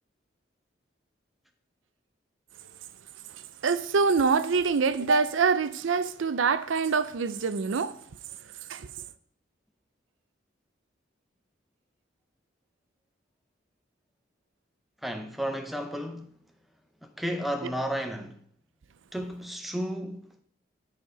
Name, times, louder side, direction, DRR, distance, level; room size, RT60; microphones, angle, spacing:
voice 1, 3.6-8.0 8.7-8.9, right 5 dB, 85° right, 0.5 m, -25 dB
voice 2, 15.0-16.3 17.0-18.4 19.1-20.4, equal, ahead, 0.6 m, -33 dB
9.8 x 4.3 x 4.9 m
head